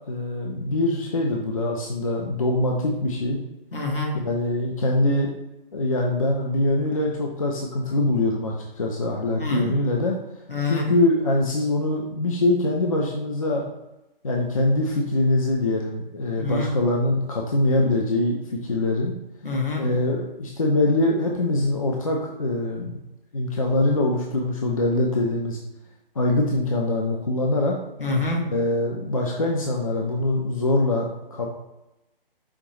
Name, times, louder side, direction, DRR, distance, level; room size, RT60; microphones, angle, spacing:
voice 1, 0.1-3.4 4.1-5.3 5.7-10.2 10.6-13.7 14.2-19.1 19.8-22.9 23.3-25.6 26.2-27.8 28.5-31.5, left 2 dB, 35° left, -1 dB, 0.4 m, -23 dB
voice 2, 3.7-4.3 9.4-9.7 10.5-10.9 16.4-16.7 19.4-19.9 28.0-28.4, left 3 dB, 65° left, -1 dB, 1.3 m, -26 dB
5.0 x 2.9 x 3.1 m, 0.95 s
figure-of-eight pair, 140°, 29 cm